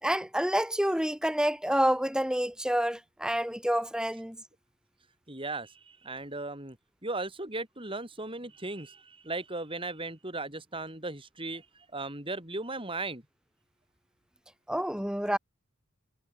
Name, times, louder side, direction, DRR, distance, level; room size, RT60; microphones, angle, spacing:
voice 1, 0.0-4.4 14.7-15.4, equal, 5° right, 3.0 m, -28 dB
voice 2, 5.3-6.8 7.0-13.2, right 2 dB, 25° right, 5.7 m, -37 dB
head